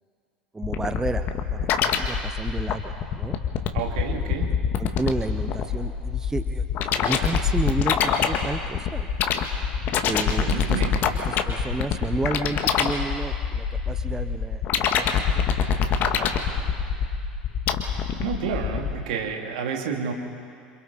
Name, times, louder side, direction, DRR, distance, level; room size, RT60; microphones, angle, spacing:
voice 1, 0.5-3.4 4.3-4.4 4.8-9.1 10.1-10.8 11.3-15.8, right 3 dB, 10° right, 10 dB, 0.7 m, -32 dB
sound 1, 0.6-19.0, left 7 dB, 40° left, 1.7 m, -25 dB
voice 2, 3.7-4.5 10.4-10.9 18.2-20.1, right 6 dB, 60° right, 2 dB, 2.7 m, -30 dB
27.5 x 26.5 x 4.2 m, 2.3 s
figure-of-eight pair, 70°, 5 cm